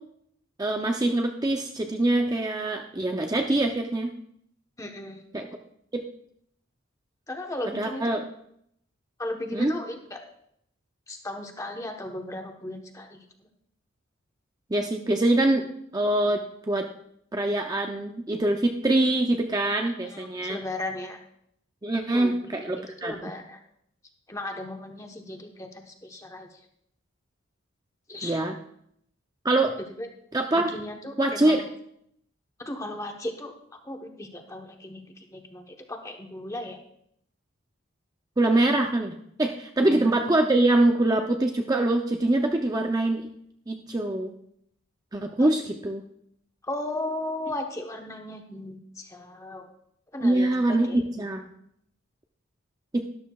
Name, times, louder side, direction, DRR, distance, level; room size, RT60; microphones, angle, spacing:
voice 1, 0.6-4.1 5.3-5.5 5.9-6.0 7.7-8.2 9.5-9.7 14.7-16.9 17.3-20.6 21.8-23.3 28.2-28.6 29.4-29.7 30.3-30.7 31.2-31.7 38.4-43.3 43.7-44.3 45.1-46.0 50.2-51.5 52.9-53.1, right 2 dB, 20° right, 3 dB, 0.5 m, -24 dB
voice 2, 4.8-5.2 7.3-8.1 9.2-10.2 11.1-13.2 20.0-21.2 22.1-22.7 23.0-23.6 24.3-26.5 28.1-28.4 30.0-30.1 30.5-31.7 32.6-33.5 33.8-36.8 39.8-40.1 45.4-45.5 46.6-49.7 50.1-51.0, left 1 dB, 15° left, 3 dB, 1.0 m, -36 dB
13.0 x 11.5 x 2.3 m, 0.71 s
head